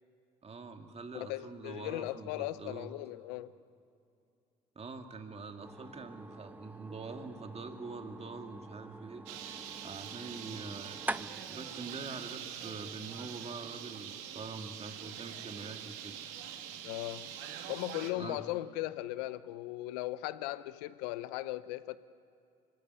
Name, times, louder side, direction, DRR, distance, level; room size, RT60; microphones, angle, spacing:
voice 1, 0.4-2.9 4.8-9.3 9.8-16.2 18.1-18.4, right 4 dB, 30° right, 2.5 m, -45 dB
voice 2, 1.1-3.5 16.8-17.4 17.7-22.0, left 16 dB, 85° left, 0.8 m, -38 dB
sound 1, 5.6-13.4, right 2 dB, 10° right, 0.6 m, -46 dB
Bird, 9.3-18.1, right 9 dB, 75° right, 1.8 m, -44 dB
25.0 x 16.0 x 9.8 m
hypercardioid pair, 65°, 20 cm